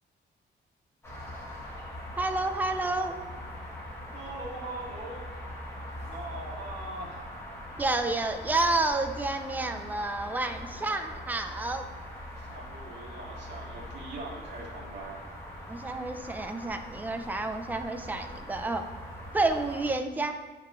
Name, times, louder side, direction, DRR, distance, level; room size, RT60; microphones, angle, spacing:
sound 1, 1.0-19.9, left 1 dB, 15° left, 1.2 m, -42 dB
voice 1, 2.2-3.2 7.8-11.8 15.7-18.9 19.3-20.4, right 2 dB, 10° right, 7 dB, 0.3 m, -30 dB
voice 2, 4.1-7.5 10.7-11.2 12.4-15.2, right 2 dB, 75° right, -5 dB, 1.7 m, -42 dB
9.2 x 4.7 x 2.4 m, 1.2 s
wide cardioid pair, 155°, 19 cm